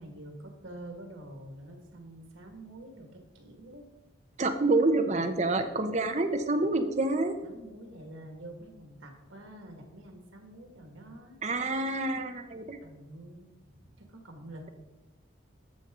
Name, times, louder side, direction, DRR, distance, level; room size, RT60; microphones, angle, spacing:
voice 1, 0.0-3.9 7.4-11.4 12.8-13.5 13.7-14.7, right 1 dB, 85° right, 3 dB, 2.0 m, -47 dB
voice 2, 4.4-7.4 11.4-12.8, right 2 dB, 35° right, 6 dB, 0.8 m, -27 dB
12.5 x 7.0 x 3.8 m, 1.1 s
head